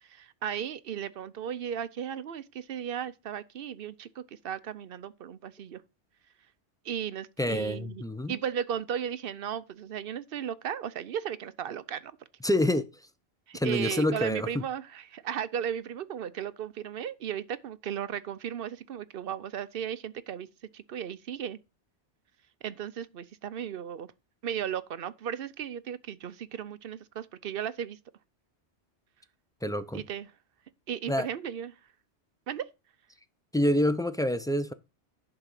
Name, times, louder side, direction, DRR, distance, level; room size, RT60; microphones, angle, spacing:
voice 1, 0.0-5.8 6.8-8.0 8.3-12.1 13.5-20.5 20.7-21.6 22.6-24.1 24.4-28.0 29.9-30.3 30.9-31.7 32.5-32.7, right 9 dB, 60° right, 0.8 m, -35 dB
voice 2, 7.4-8.4 12.4-12.9 13.5-14.5 29.6-30.0 31.1-31.3 33.5-34.7, left 1 dB, 5° left, 0.4 m, -27 dB
11.0 x 3.9 x 7.4 m
omnidirectional pair, 1.2 m